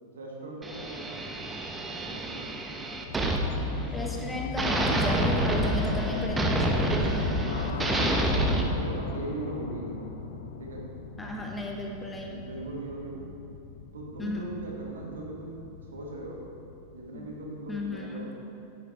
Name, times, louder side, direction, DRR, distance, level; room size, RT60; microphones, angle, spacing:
voice 1, 0.1-1.3 2.0-2.5 7.2-10.1 10.6-10.8 12.3-13.3 13.9-15.7 15.9-16.4 16.9-18.3, right 2 dB, 65° right, -2 dB, 1.6 m, -39 dB
sound 1, 0.6-4.2 4.6-8.6, right 1 dB, 15° right, 0.8 m, -28 dB
sound 2, 3.1-18.0, left 5 dB, 60° left, 0.5 m, -37 dB
voice 2, 3.9-6.8 11.2-12.4 14.2-14.4 17.1-17.3 17.7-18.3, left 2 dB, 10° left, 0 dB, 1.1 m, -34 dB
9.6 x 9.5 x 3.2 m, 2.6 s
figure-of-eight pair, 90°, 0 cm